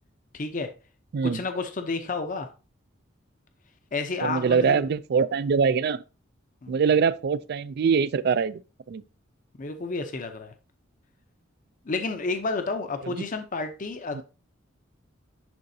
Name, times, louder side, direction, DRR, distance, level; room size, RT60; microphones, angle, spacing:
voice 1, 0.3-0.7 1.3-2.5 3.9-4.8 6.6-6.8 9.6-10.5 11.8-14.2, left 3 dB, 40° left, 0.6 m, -30 dB
voice 2, 4.2-6.0 6.7-8.6 8.9-9.0 13.0-13.3 14.1-14.2, right 6 dB, 55° right, 0.3 m, -23 dB
10.5 x 3.7 x 2.7 m
head